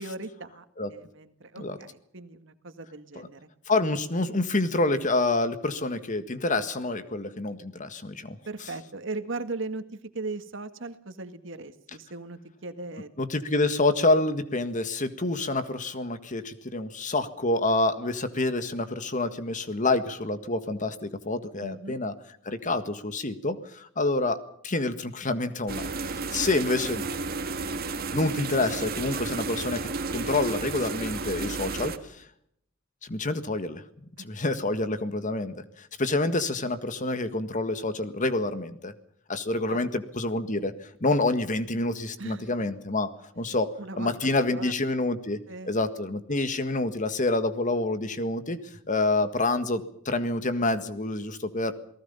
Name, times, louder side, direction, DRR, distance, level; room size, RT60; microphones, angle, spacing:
voice 1, 0.0-0.6 0.9-3.5 8.5-13.1 21.6-22.0 34.2-34.3 39.7-39.9 42.2-42.5 43.8-44.7 45.5-45.8, right 3 dB, 65° right, 9 dB, 1.9 m, -38 dB
voice 2, 3.7-8.4 13.2-22.1 22.4-27.0 28.1-32.2 33.0-33.8 34.2-38.9 39.3-43.7 44.0-45.4 45.6-51.7, left 2 dB, 40° left, 11 dB, 1.7 m, -27 dB
sound 1, 25.7-32.0, right 3 dB, 50° right, 1.9 m, -32 dB
29.0 x 19.0 x 5.6 m, 0.68 s
head